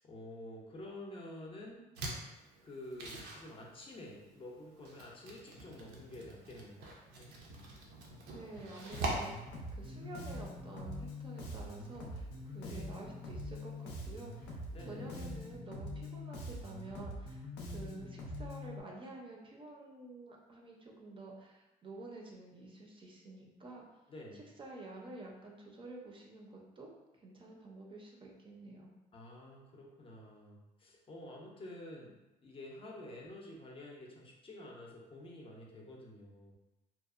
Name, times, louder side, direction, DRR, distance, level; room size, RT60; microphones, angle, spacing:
voice 1, 0.0-1.8 2.6-7.4 12.6-12.9 14.7-15.2 24.1-24.4 29.1-32.1 32.4-36.6, left 1 dB, 35° left, -2 dB, 0.5 m, -49 dB
sound 1, 1.9-15.6, right 1 dB, 90° right, 0.6 m, -47 dB
voice 2, 8.3-23.9 24.3-28.9, right 2 dB, 30° right, -1 dB, 0.4 m, -50 dB
Bass guitar, 8.9-18.8, left 1 dB, 85° left, 0.5 m, -44 dB
2.7 x 2.0 x 2.4 m, 1.0 s
cardioid pair, 110°, 17 cm